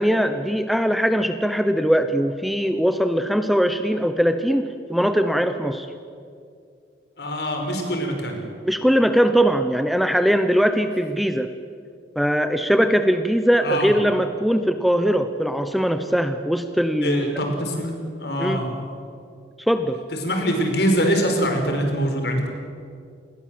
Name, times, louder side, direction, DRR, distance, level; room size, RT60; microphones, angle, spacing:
voice 1, 0.0-5.9 8.6-11.5 12.2-17.3 18.4-18.6 19.7-20.0, equal, ahead, 8 dB, 0.9 m, -21 dB
voice 2, 7.2-8.4 13.6-13.9 17.0-18.7 20.1-22.5, equal, 65° left, 3 dB, 5.1 m, -24 dB
28.0 x 21.0 x 7.8 m, 2.3 s
head